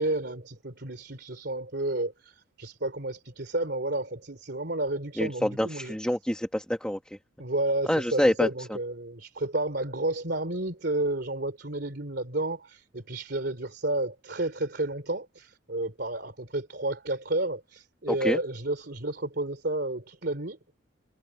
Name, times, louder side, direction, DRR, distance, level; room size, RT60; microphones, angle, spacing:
voice 1, 0.0-6.0 7.4-20.6, right 2 dB, 55° right, 3.3 m, -31 dB
voice 2, 5.2-7.0 7.9-8.5 18.1-18.4, equal, 5° left, 1.4 m, -26 dB
head